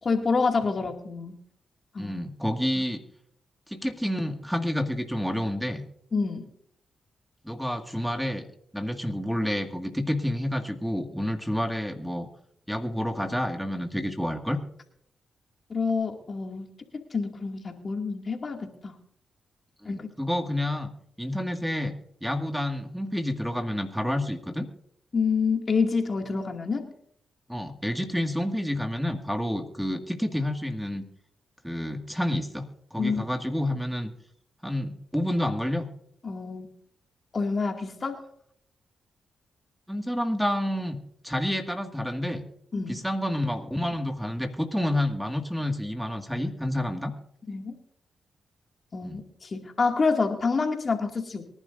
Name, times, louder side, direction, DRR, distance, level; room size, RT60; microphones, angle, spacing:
voice 1, 0.0-1.4 1.9-2.2 6.1-6.5 15.7-18.9 19.9-20.1 25.1-26.9 33.0-33.2 36.2-36.7 37.3-38.2 42.7-43.0 47.5-47.7 48.9-51.6, left 4 dB, 50° left, 3 dB, 2.2 m, -27 dB
voice 2, 2.0-3.0 3.7-5.8 7.4-8.4 8.7-12.3 12.7-14.6 19.8-20.9 21.2-22.0 22.2-24.7 27.5-31.0 31.6-34.1 34.6-35.9 39.9-41.0 41.2-42.4 42.9-47.1 49.0-49.2, left 1 dB, ahead, 5 dB, 1.9 m, -29 dB
23.5 x 11.0 x 2.6 m, 0.70 s
supercardioid pair, 50°, 0 cm